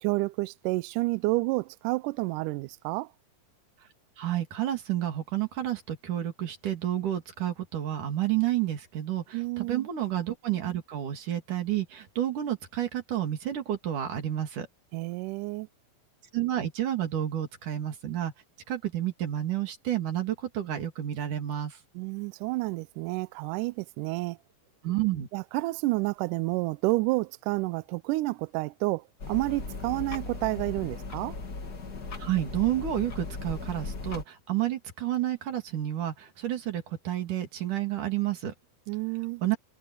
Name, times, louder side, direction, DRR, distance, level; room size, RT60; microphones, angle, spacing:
voice 1, 0.0-3.1 9.3-9.9 14.9-15.7 22.0-24.4 25.3-31.4 38.9-39.4, right 22 dB, 85° right, 1.8 m, -30 dB
voice 2, 4.2-14.7 16.3-18.3 18.7-21.8 24.8-25.3 32.2-38.5 39.4-39.6, right 12 dB, 60° right, 4.0 m, -30 dB
sound 1, 29.2-34.2, left 3 dB, 30° left, 2.2 m, -37 dB
omnidirectional pair, 4.2 m